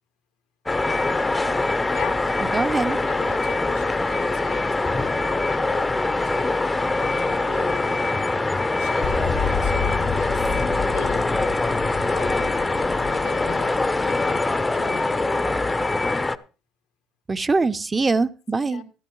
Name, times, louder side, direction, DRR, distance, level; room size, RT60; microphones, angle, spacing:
sound 1, 0.7-16.4, left 2 dB, 15° left, 0.7 m, -23 dB
voice 1, 1.9-2.3 3.1-8.0 8.8-11.3 12.1-15.3 18.5-18.8, left 9 dB, 85° left, 4 dB, 2.0 m, -39 dB
voice 2, 2.5-3.0 17.3-18.8, right 3 dB, 25° right, 14 dB, 0.7 m, -22 dB
sound 2, 9.0-15.0, left 7 dB, 55° left, 0.7 m, -31 dB
15.0 x 11.5 x 3.1 m, 0.34 s
supercardioid pair, 80°, 0 cm